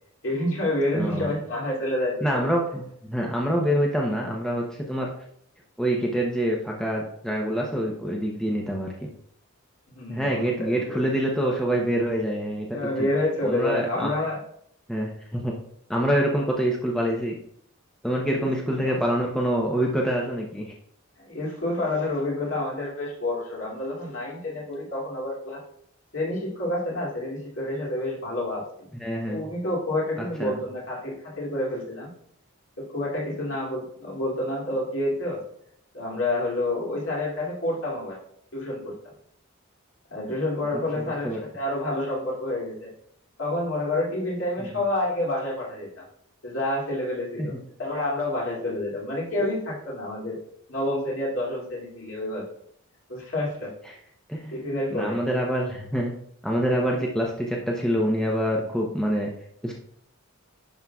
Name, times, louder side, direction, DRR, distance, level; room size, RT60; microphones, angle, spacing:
voice 1, 0.2-2.5 9.9-11.0 12.7-14.4 18.4-19.0 21.2-25.6 26.1-28.9 29.3-32.1 32.8-35.4 35.9-38.2 38.5-38.9 40.1-42.9 43.4-46.0 46.4-50.4 50.7-52.5 53.1-53.7 54.5-55.2, left 1 dB, 60° left, -4 dB, 2.5 m, -29 dB
voice 2, 0.9-1.3 2.2-5.1 5.8-9.1 10.1-13.1 13.4-14.1 14.9-15.5 15.9-17.3 18.0-20.7 29.0-29.4 30.2-30.6 41.2-41.4 47.4-47.6 53.9-54.0 54.3-54.5 54.9-56.1 56.4-59.3 59.6-59.7, equal, 5° left, -2 dB, 0.7 m, -26 dB
10.5 x 5.6 x 2.3 m, 0.67 s
head